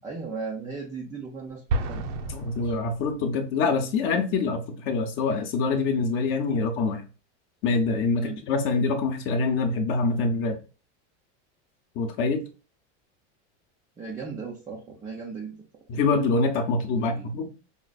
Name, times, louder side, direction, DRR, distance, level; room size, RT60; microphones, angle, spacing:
voice 1, 0.0-2.0 2.6-2.7 8.1-8.4 14.0-15.6 16.7-17.4, right 5 dB, 10° right, 0.3 m, -37 dB
Explosion, 1.7-3.5, right 2 dB, 80° right, 0.8 m, -31 dB
voice 2, 2.3-7.0 7.6-10.6 12.0-12.4 15.9-17.5, left 4 dB, 35° left, 0.7 m, -25 dB
5.1 x 2.4 x 2.3 m
supercardioid pair, 155°, 36 cm